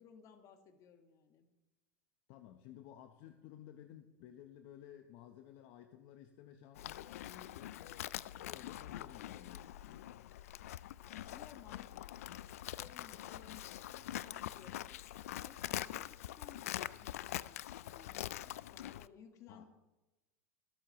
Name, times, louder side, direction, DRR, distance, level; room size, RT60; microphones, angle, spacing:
voice 1, 0.0-1.5 11.0-19.6, left 7 dB, 45° left, 6 dB, 1.7 m, -60 dB
voice 2, 2.3-8.1 8.3-10.1 19.5-19.6, left 11 dB, 60° left, 6 dB, 1.0 m, -55 dB
Livestock farm animals working animals, 6.7-19.1, left 13 dB, 85° left, 0.4 m, -44 dB
25.0 x 8.4 x 3.1 m, 1.1 s
hypercardioid pair, 105°, 8 cm